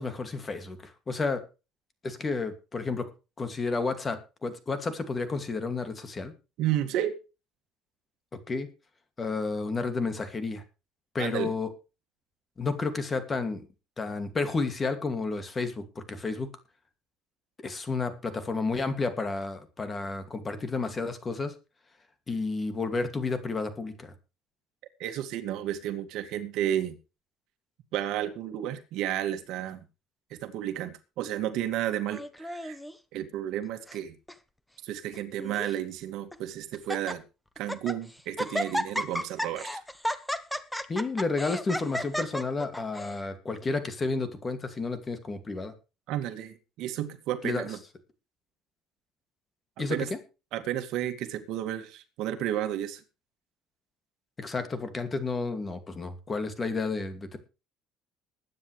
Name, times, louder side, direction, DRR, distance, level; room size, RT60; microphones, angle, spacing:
voice 1, 0.0-1.4 2.0-3.1 3.4-6.3 8.5-8.7 9.2-10.6 11.1-11.7 12.6-13.6 14.0-16.5 17.6-21.5 22.3-24.1 40.9-45.7 47.4-47.7 49.8-50.2 54.4-57.4, left 3 dB, 20° left, 9 dB, 2.5 m, -31 dB
voice 2, 6.6-7.2 11.2-11.5 25.0-27.0 27.9-29.9 30.3-32.8 33.1-34.2 34.8-37.2 37.6-39.8 46.1-47.8 49.9-50.1 50.5-53.0, right 12 dB, 70° right, 8 dB, 2.2 m, -32 dB
Laughter, 32.1-32.9 33.6-34.0 34.3-34.4 35.1-35.8 36.3-36.4 36.7-37.1 37.6-38.0 38.4-43.2, equal, 5° left, 1.1 m, -33 dB
21.0 x 9.5 x 3.4 m, 0.31 s
cardioid pair, 145°, 0 cm